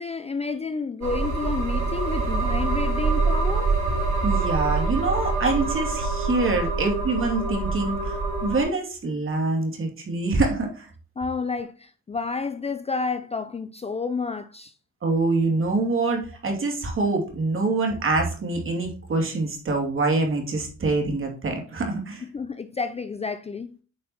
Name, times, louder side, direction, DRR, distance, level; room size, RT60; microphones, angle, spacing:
voice 1, 0.0-3.7 11.2-14.7 22.3-23.7, left 4 dB, 20° left, 0.4 m, -30 dB
sound 1, 1.0-8.6, right 3 dB, 85° right, 2.6 m, -25 dB
voice 2, 4.2-10.9 15.0-22.2, right 3 dB, 45° right, 2.5 m, -25 dB
8.7 x 5.3 x 2.9 m
cardioid pair, 90°, 30 cm